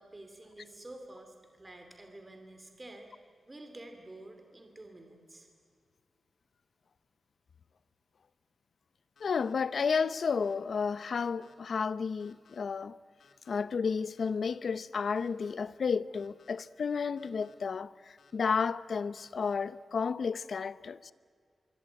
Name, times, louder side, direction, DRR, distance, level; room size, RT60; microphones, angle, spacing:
voice 1, 0.0-3.1 3.5-5.5, right 1 dB, 20° right, 2.6 m, -49 dB
sound 1, 9.2-9.5 10.2-10.5 11.2-11.5 12.2-12.6 13.2-13.6 14.2-14.6 15.2-15.5 16.1-16.5 17.2-17.5 18.2-18.6 19.2-19.5, left 6 dB, 75° left, 3.2 m, -63 dB
voice 2, 9.2-13.0 13.5-17.9 18.3-21.1, left 5 dB, 55° left, 0.6 m, -32 dB
25.0 x 23.5 x 8.9 m
wide cardioid pair, 175°, 0 cm